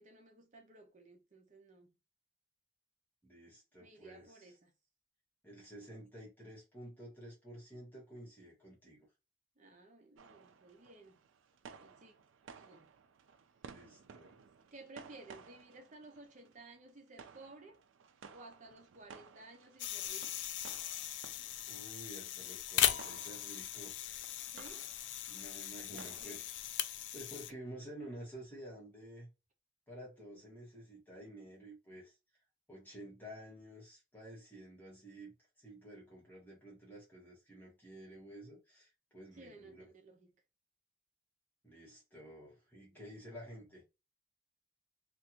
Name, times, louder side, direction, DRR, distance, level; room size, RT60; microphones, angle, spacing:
voice 1, 0.0-1.9 3.8-4.7 9.6-11.2 11.7-12.1 12.6-12.9 14.7-17.8 18.3-20.4 24.5-24.9 25.9-26.5 39.3-40.4 42.9-43.1, right 2 dB, 40° right, 0.7 m, -56 dB
voice 2, 3.2-4.5 5.4-9.1 13.7-14.4 21.7-24.0 25.3-26.5 27.1-29.3 29.9-32.2 32.7-39.9 41.6-43.8, right 1 dB, 10° left, 1.4 m, -51 dB
sound 1, 10.2-27.2, right 6 dB, 75° right, 0.4 m, -57 dB
sound 2, 19.8-27.5, left 11 dB, 60° left, 0.3 m, -38 dB
3.3 x 2.5 x 2.8 m
head